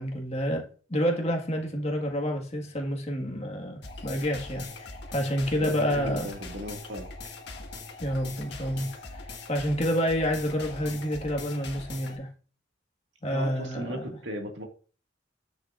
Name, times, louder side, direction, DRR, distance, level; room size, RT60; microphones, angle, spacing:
voice 1, 0.0-6.3 8.0-9.2 9.5-12.3 13.2-14.0, equal, 35° left, 1.7 m, -29 dB
sound 1, 3.8-12.2, left 3 dB, 65° left, 1.7 m, -41 dB
voice 2, 5.6-7.4 13.3-14.6, equal, 80° right, 2.0 m, -36 dB
9.9 x 6.3 x 2.5 m
head